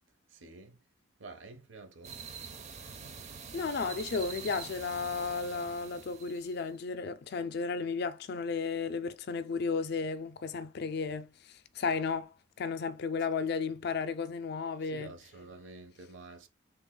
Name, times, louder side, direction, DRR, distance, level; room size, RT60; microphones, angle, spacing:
voice 1, 0.3-0.8 1.2-2.2 14.8-16.5, right 2 dB, 70° right, 0.8 m, -49 dB
sound 1, 2.0-6.7, right 6 dB, 35° right, 0.5 m, -45 dB
voice 2, 3.5-11.3 11.8-15.1, left 5 dB, 50° left, 0.3 m, -34 dB
3.4 x 2.3 x 3.7 m
head